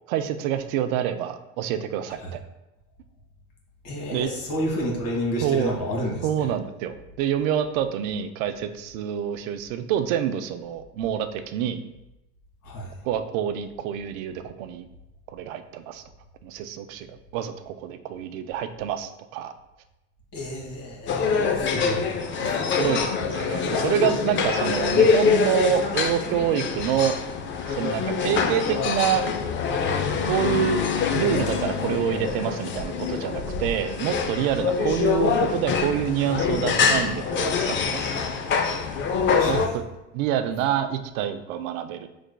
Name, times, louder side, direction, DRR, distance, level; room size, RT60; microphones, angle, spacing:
voice 1, 0.1-2.4 4.1-4.3 5.4-5.7 6.2-11.8 13.0-14.9 15.3-16.0 16.4-19.5 22.8-27.2 27.6-29.2 30.3-30.8 31.1-38.6 39.4-39.8 40.1-42.1, right 9 dB, 85° right, 9 dB, 0.5 m, -27 dB
voice 2, 3.8-6.2 12.6-12.9 20.3-22.1 22.4-22.6 39.3-39.7, equal, 55° left, -1 dB, 1.5 m, -30 dB
sound 1, 21.1-39.7, left 5 dB, 30° left, 0.4 m, -25 dB
5.0 x 3.3 x 2.2 m, 0.94 s
supercardioid pair, 105°, 40 cm